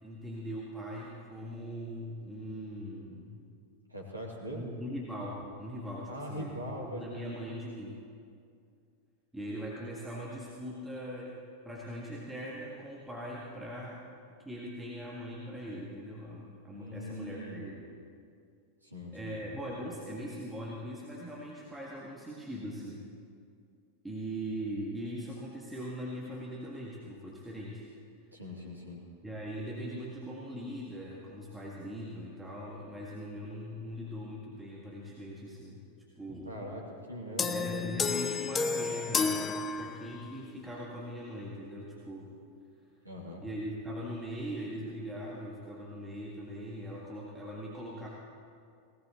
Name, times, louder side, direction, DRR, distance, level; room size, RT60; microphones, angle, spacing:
voice 1, 0.0-3.4 4.6-8.0 9.3-11.4 11.6-14.0 14.5-17.8 19.1-23.1 24.0-27.9 29.2-35.8 36.2-36.6 37.5-42.3 43.4-48.1, equal, 5° right, -5 dB, 1.8 m, -41 dB
voice 2, 3.9-4.7 6.1-7.3 16.7-17.7 18.8-19.4 28.3-29.0 36.4-37.9 43.0-43.4, equal, 85° right, -3 dB, 2.7 m, -41 dB
sound 1, 37.4-40.4, left 5 dB, 20° left, 0.7 m, -31 dB
18.5 x 18.5 x 3.0 m, 2.3 s
figure-of-eight pair, 90°, 0 cm